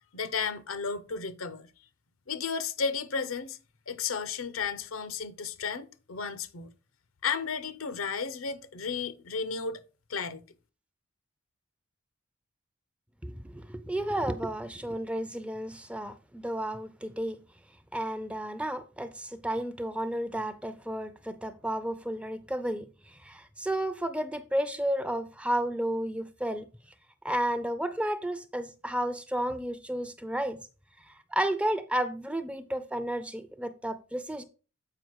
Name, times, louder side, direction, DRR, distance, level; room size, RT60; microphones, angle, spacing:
voice 1, 0.1-1.7 2.3-3.6 3.9-6.7 7.2-9.8 10.1-10.4, left 5 dB, 80° left, 0.8 m, -33 dB
voice 2, 13.2-17.4 17.9-26.7 27.2-30.6 31.1-34.4, right 1 dB, 5° right, 0.5 m, -32 dB
7.8 x 4.9 x 4.6 m
head